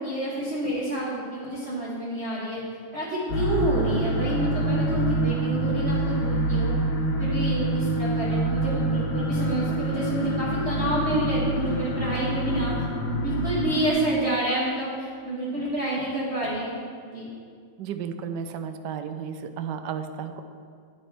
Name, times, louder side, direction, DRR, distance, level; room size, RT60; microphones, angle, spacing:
voice 1, 0.0-2.6 2.9-6.8 7.2-12.8 13.2-16.8 17.1-17.3, right 1 dB, 40° right, -6 dB, 1.3 m, -28 dB
sound 1, 3.3-13.9, right 1 dB, 65° left, 1.4 m, -26 dB
voice 2, 17.8-20.4, right 7 dB, 80° right, 8 dB, 1.2 m, -33 dB
8.7 x 8.4 x 3.4 m, 2.1 s
omnidirectional pair, 1.9 m